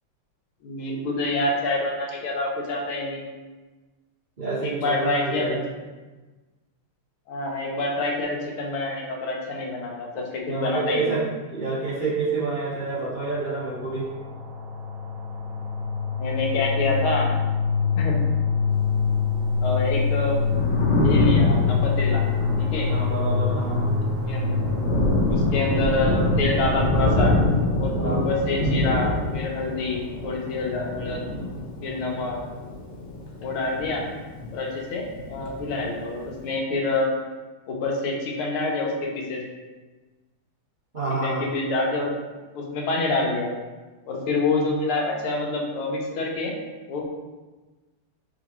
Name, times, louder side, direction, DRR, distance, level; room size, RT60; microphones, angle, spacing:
voice 1, 0.6-3.3 4.6-5.5 7.3-11.2 16.2-17.3 17.9-18.2 19.6-20.4 21.0-22.2 22.6-22.9 24.2-24.5 25.3-27.3 27.8-31.2 31.8-32.4 33.4-34.0 34.5-37.1 37.7-39.4 41.2-42.1 42.5-43.5 44.1-46.5 46.9-47.1, left 2 dB, 80° left, -1 dB, 1.7 m, -27 dB
voice 2, 4.4-5.6 10.5-11.2 11.5-14.1 22.9-24.0 28.0-28.2 40.9-41.4, right 3 dB, 55° right, -10 dB, 0.5 m, -28 dB
sound 1, 13.2-27.5, left 5 dB, 70° right, 1.3 m, -25 dB
Thunder, 20.3-34.7 35.0-36.3, left 2 dB, 65° left, 1.4 m, -26 dB
4.9 x 3.4 x 3.0 m, 1.2 s
omnidirectional pair, 2.3 m